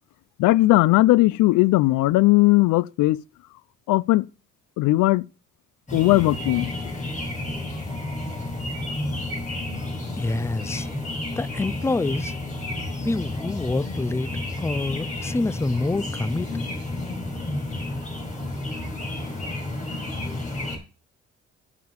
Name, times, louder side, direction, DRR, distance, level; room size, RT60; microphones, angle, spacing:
voice 1, 0.4-3.2 3.9-4.2 4.8-5.3 5.9-6.7, left 19 dB, 85° left, 0.5 m, -18 dB
sound 1, 5.9-20.8, left 2 dB, 25° left, 4.8 m, -31 dB
sound 2, 6.3-12.9, left 6 dB, 65° left, 2.8 m, -46 dB
voice 2, 10.2-10.9 11.4-12.3 13.0-16.7, left 2 dB, 10° left, 0.5 m, -27 dB
7.2 x 6.1 x 7.7 m
cardioid pair, 90°, 30 cm